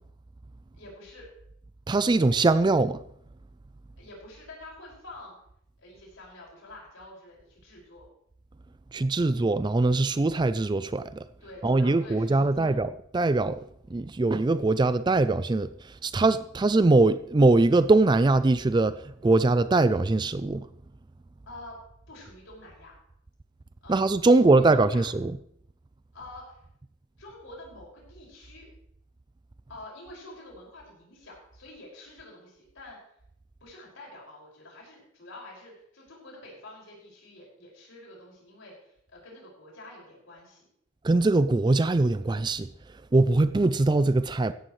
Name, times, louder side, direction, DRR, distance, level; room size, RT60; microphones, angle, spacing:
voice 1, 0.8-1.3 4.0-5.3 5.8-8.1 11.4-12.7 21.5-21.8 22.1-22.9 23.8-25.1 26.1-26.6 27.2-28.7 29.7-33.0 33.6-40.7, left 2 dB, 70° left, 5.7 m, -47 dB
voice 2, 1.9-3.0 8.9-11.0 11.6-12.9 13.1-13.6 13.9-15.7 16.0-18.9 19.2-20.7 23.9-25.3 41.0-42.7 43.1-44.5, right 2 dB, 20° right, 0.3 m, -22 dB
16.0 x 11.5 x 3.2 m
head